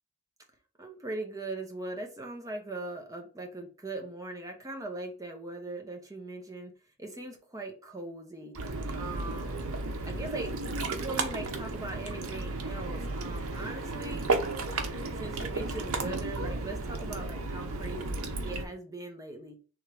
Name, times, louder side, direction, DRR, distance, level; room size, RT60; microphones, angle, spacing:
voice 1, 0.8-6.7 7.0-8.6 8.9-9.7 10.0-14.3 15.1-19.6, right 2 dB, 15° right, 0.9 m, -40 dB
Ocean, 8.6-18.7, right 3 dB, 85° right, 0.8 m, -33 dB
3.6 x 3.1 x 4.7 m
head